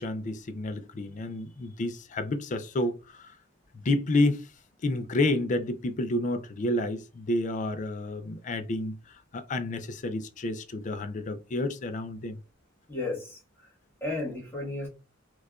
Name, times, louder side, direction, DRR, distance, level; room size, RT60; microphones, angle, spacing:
voice 1, 0.0-3.3 3.7-4.5 4.8-12.4, left 2 dB, 40° left, 0.4 m, -30 dB
voice 2, 12.9-13.4 14.0-14.9, left 2 dB, 10° left, 1.4 m, -33 dB
4.6 x 2.4 x 2.3 m
head